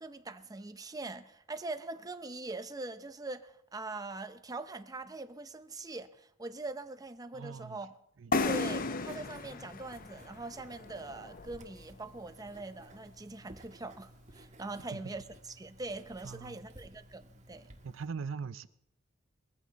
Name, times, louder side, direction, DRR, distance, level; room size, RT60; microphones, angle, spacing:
voice 1, 0.0-7.9 8.5-15.2 15.6-17.7, right 2 dB, 20° right, 0.7 m, -42 dB
voice 2, 7.3-7.8 8.2-8.5 14.9-15.0 16.2-16.6 17.8-18.7, right 5 dB, 80° right, 0.6 m, -41 dB
sound 1, 8.3-11.9, left 3 dB, 45° left, 0.7 m, -35 dB
Writing, 8.8-18.1, right 1 dB, 35° right, 1.6 m, -56 dB
20.5 x 14.5 x 4.1 m
head